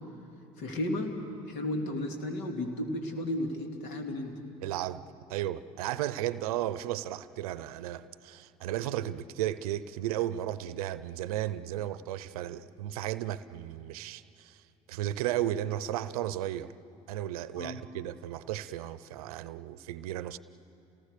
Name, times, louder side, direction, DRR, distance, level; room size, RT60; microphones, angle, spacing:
voice 1, 0.6-1.2 1.4-4.3 17.6-17.8, left 1 dB, 75° left, 2.6 m, -33 dB
voice 2, 4.6-5.0 5.3-14.6 14.9-16.7 17.1-20.4, right 13 dB, 85° right, 0.6 m, -34 dB
29.0 x 19.0 x 6.7 m
hypercardioid pair, 65°, 18 cm